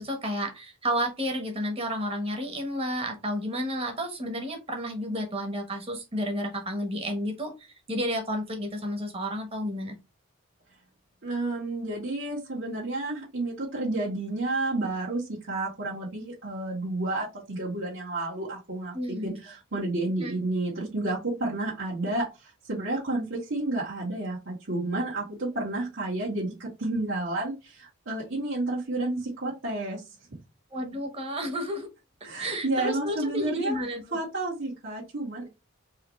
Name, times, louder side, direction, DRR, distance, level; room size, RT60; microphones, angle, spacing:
voice 1, 0.0-7.5 7.9-10.0 18.9-19.3 20.2-20.3 30.7-31.9 32.4-34.2, equal, 30° right, 3 dB, 1.2 m, -31 dB
voice 2, 11.2-22.2 22.7-30.0 32.2-33.8 34.1-35.5, right 2 dB, 70° right, -8 dB, 2.1 m, -31 dB
4.8 x 2.7 x 3.2 m, 0.25 s
head